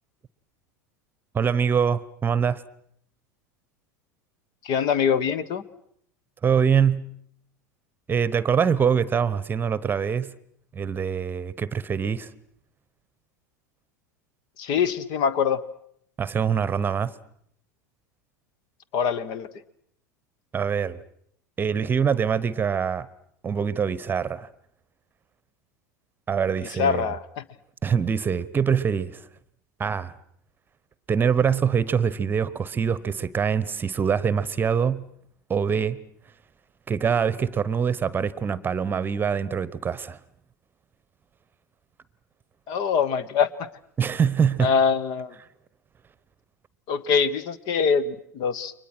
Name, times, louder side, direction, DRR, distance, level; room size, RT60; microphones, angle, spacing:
voice 1, 1.3-2.6 6.4-7.1 8.1-10.3 10.7-12.3 16.2-17.1 20.5-21.0 21.6-23.1 23.4-24.5 26.3-27.1 27.8-29.3 29.8-30.1 31.1-35.1 35.5-36.0 36.9-40.2 44.0-44.8, right 7 dB, 20° right, 1.1 m, -24 dB
voice 2, 4.6-5.6 14.6-15.6 18.9-19.5 26.8-27.4 42.7-43.5 44.6-45.3 46.9-48.7, left 6 dB, 50° left, 1.3 m, -23 dB
30.0 x 23.5 x 6.2 m
figure-of-eight pair, 80°, 9 cm